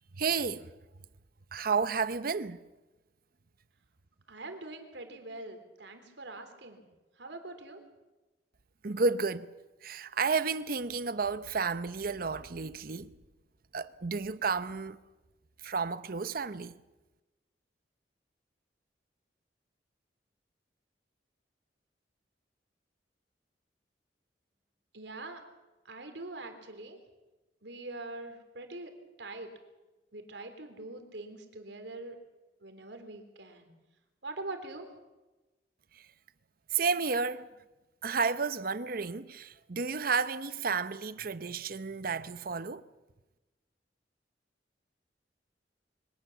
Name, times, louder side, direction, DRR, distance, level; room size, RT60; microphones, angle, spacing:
voice 1, 0.2-0.7 1.5-2.6 8.8-9.5 9.8-13.2 13.7-15.0 15.6-16.7 35.9-36.0 36.7-37.5 38.0-42.8, right 5 dB, 55° right, 0.8 m, -31 dB
voice 2, 4.3-6.9 7.2-7.8 24.9-25.4 25.9-27.0 27.6-29.5 30.1-32.2 32.6-33.7 34.2-34.9, right 2 dB, 85° right, 3.4 m, -43 dB
24.0 x 18.5 x 7.2 m
head